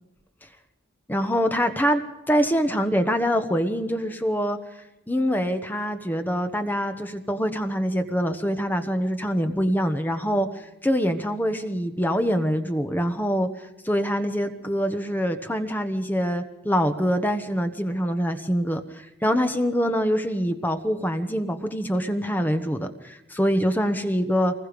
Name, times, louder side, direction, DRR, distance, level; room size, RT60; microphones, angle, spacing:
voice 1, 1.1-4.6 5.1-13.5 13.8-24.5, equal, 10° left, 7 dB, 1.2 m, -24 dB
25.0 x 20.5 x 5.3 m, 0.96 s
head